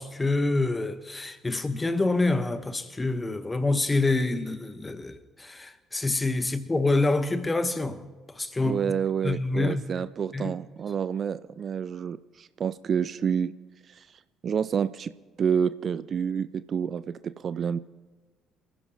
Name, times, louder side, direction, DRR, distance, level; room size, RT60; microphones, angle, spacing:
voice 1, 0.0-8.8 9.2-10.0 10.3-10.5, left 2 dB, 20° left, 1.2 m, -27 dB
voice 2, 8.6-13.5 13.9-15.1 15.4-17.8, right 7 dB, 45° right, 0.4 m, -29 dB
27.5 x 15.5 x 2.9 m
figure-of-eight pair, 50°, 0 cm